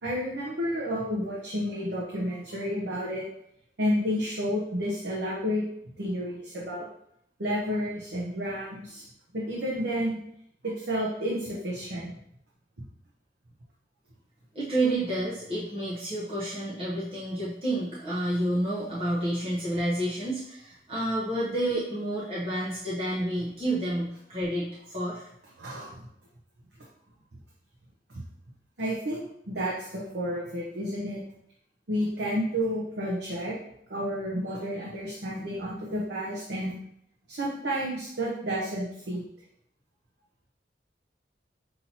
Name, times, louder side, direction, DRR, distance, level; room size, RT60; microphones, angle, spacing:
voice 1, 0.0-3.2 3.8-5.6 6.0-6.8 7.4-9.0 9.3-10.2 10.6-12.1 12.8-12.9 25.6-26.0 28.1-28.2 28.8-31.2 31.9-33.5 33.9-36.8 37.3-39.2, equal, 80° right, -5 dB, 0.8 m, -31 dB
voice 2, 14.5-25.3, right 1 dB, 35° right, -9 dB, 0.8 m, -29 dB
5.7 x 2.8 x 2.8 m, 0.73 s
head